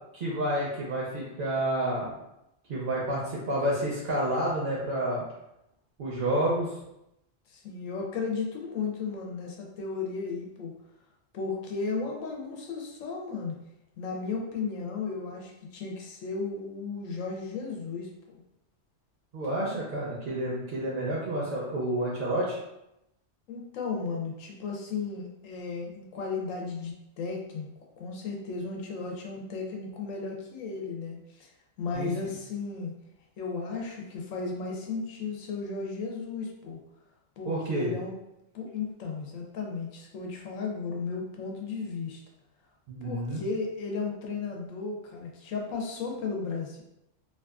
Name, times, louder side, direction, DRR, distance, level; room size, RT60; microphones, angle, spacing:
voice 1, 0.1-2.1 2.7-5.2 6.0-6.8 19.3-22.6 31.9-32.1 37.5-37.9 42.9-43.4, right 1 dB, 55° right, -5 dB, 0.6 m, -29 dB
voice 2, 7.5-10.7 11.3-13.5 14.0-18.4 23.5-27.7 28.0-31.5 31.8-32.9 33.4-36.8 37.4-38.1 38.5-42.2 43.0-46.8, left 4 dB, 90° left, 0 dB, 1.0 m, -35 dB
2.7 x 2.3 x 2.3 m, 0.86 s
omnidirectional pair, 1.3 m